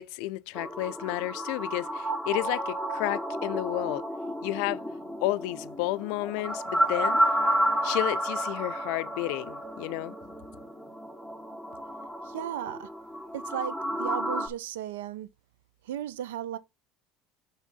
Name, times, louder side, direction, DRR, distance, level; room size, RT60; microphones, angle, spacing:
voice 1, 0.0-4.1 4.4-4.8 5.2-7.2 7.8-10.2, left 19 dB, 75° left, 0.4 m, -31 dB
sound 1, 0.5-14.5, equal, 5° right, 1.2 m, -31 dB
Keyboard (musical), 2.4-4.8, left 1 dB, 10° left, 0.8 m, -48 dB
voice 2, 12.2-12.9 13.3-15.3 15.8-16.6, right 11 dB, 90° right, 0.4 m, -35 dB
5.6 x 3.6 x 5.3 m
supercardioid pair, 85°, 0 cm